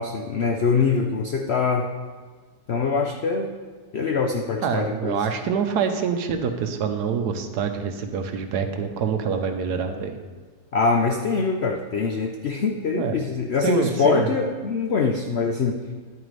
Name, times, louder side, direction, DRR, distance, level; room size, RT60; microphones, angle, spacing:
voice 1, 0.0-1.9 2.7-3.5 3.9-5.2 10.7-15.8, left 4 dB, 70° left, 3 dB, 0.6 m, -23 dB
voice 2, 4.6-10.2 13.0-13.2 13.6-14.3, right 6 dB, 70° right, 6 dB, 1.2 m, -25 dB
10.5 x 9.0 x 3.2 m, 1.5 s
omnidirectional pair, 1.9 m